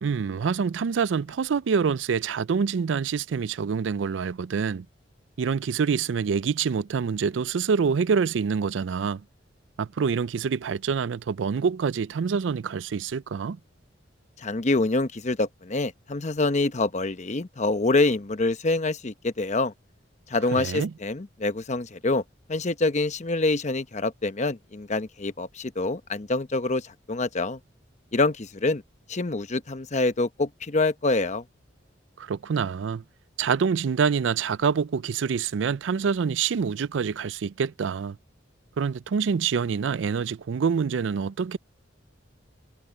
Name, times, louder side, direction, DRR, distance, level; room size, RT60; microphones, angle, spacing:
voice 1, 0.0-4.9 5.4-9.2 9.8-13.6 20.5-20.9 32.2-33.0 33.4-38.2 38.8-41.6, right 6 dB, 75° right, 0.4 m, -26 dB
voice 2, 14.4-19.7 20.3-22.2 22.5-27.6 28.1-28.8 29.1-31.4, left 2 dB, 40° left, 0.9 m, -26 dB
head